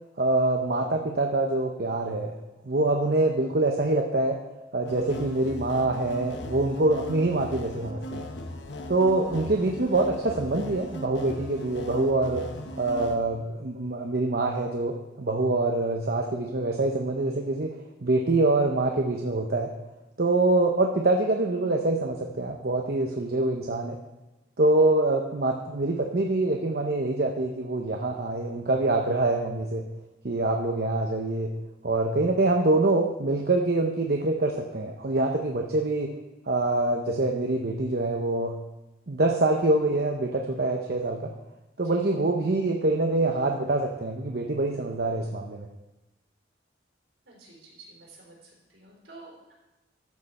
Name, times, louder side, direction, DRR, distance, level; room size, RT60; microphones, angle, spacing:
voice 1, 0.2-2.3 2.6-4.4 4.7-8.3 8.9-12.5 12.8-17.7 18.0-19.7 20.2-24.0 24.6-29.8 30.2-31.5 31.8-36.2 36.5-38.5 39.1-41.3 41.8-45.7, right 2 dB, 55° right, 2 dB, 0.8 m, -25 dB
sound 1, 4.9-13.2, left 1 dB, 70° left, 1.0 m, -38 dB
voice 2, 47.3-49.5, right 3 dB, 75° right, -3 dB, 3.9 m, -50 dB
13.0 x 6.6 x 4.2 m, 1.0 s
head